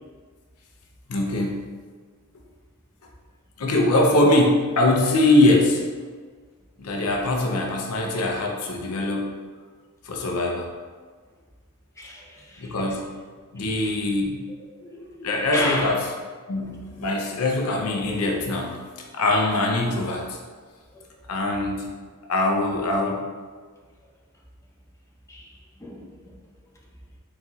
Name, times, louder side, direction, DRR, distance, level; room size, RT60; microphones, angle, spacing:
voice 1, 1.1-1.7 3.6-5.9 6.8-9.4 10.0-10.7 12.6-13.1 13.5-14.5 15.2-16.0 16.5-20.4 21.3-21.9 22.3-23.3, left 2 dB, 85° left, 1 dB, 0.6 m, -22 dB
voice 2, 12.0-12.7 13.7-14.0 14.8-15.9 20.9-21.1 25.3-25.5 25.8-26.4, left 2 dB, 15° left, -3 dB, 0.6 m, -33 dB
4.2 x 4.0 x 2.3 m, 1.5 s
head